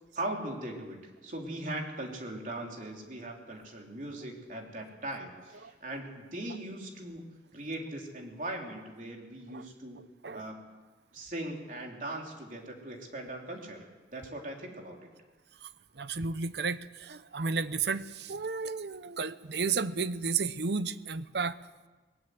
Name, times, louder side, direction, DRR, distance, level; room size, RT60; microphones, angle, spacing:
voice 1, 0.1-10.0 10.3-10.7 11.1-13.9 14.1-15.1, right 1 dB, 45° right, 1 dB, 3.5 m, -40 dB
voice 2, 10.0-10.4 15.6-15.7 15.9-21.6, right 4 dB, 70° right, 14 dB, 0.8 m, -33 dB
19.5 x 16.0 x 9.5 m, 1.3 s
head